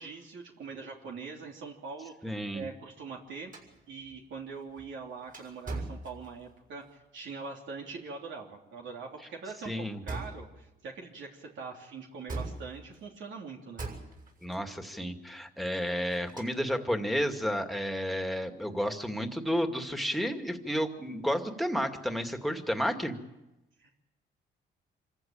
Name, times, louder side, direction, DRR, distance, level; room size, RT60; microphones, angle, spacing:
voice 1, 0.0-3.5 3.9-13.9 23.8-23.9, right 4 dB, 70° right, 0 dB, 3.1 m, -43 dB
voice 2, 2.2-2.7 9.6-10.0 14.4-23.1, equal, ahead, 5 dB, 2.3 m, -31 dB
sound 1, 3.5-6.7 10.1-10.7 12.3-13.1 13.8-14.6 15.8-16.8, right 2 dB, 40° right, 6.4 m, -41 dB
26.0 x 14.5 x 8.9 m, 0.97 s
cardioid pair, 90°, 20 cm